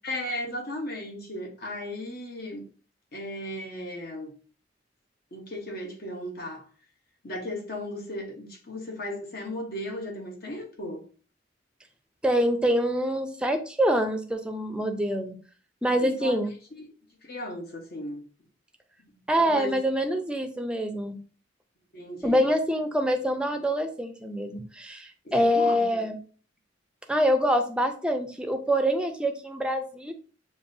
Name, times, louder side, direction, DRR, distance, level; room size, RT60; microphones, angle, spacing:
voice 1, 0.0-2.7 3.1-4.3 5.3-6.6 7.2-11.1 16.0-16.4 16.7-16.9 17.2-18.2 19.0-19.7 21.9-22.5 25.2-26.0, left 1 dB, 55° left, 1.1 m, -36 dB
voice 2, 12.2-15.4 15.8-16.5 19.3-21.2 22.2-26.2 27.1-30.1, equal, 5° right, 0.5 m, -25 dB
6.9 x 2.6 x 2.7 m
head